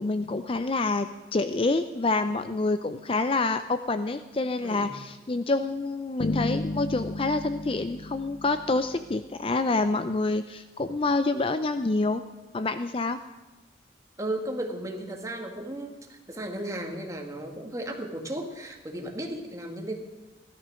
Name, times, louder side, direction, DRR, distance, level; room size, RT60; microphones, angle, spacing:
voice 1, 0.0-12.2 12.5-13.2, left 3 dB, 30° left, 10 dB, 0.5 m, -27 dB
sound 1, 6.2-9.2, left 2 dB, 70° left, 0.7 m, -33 dB
voice 2, 14.2-20.0, right 1 dB, 20° right, 3 dB, 1.8 m, -35 dB
16.5 x 12.5 x 6.3 m, 1.1 s
head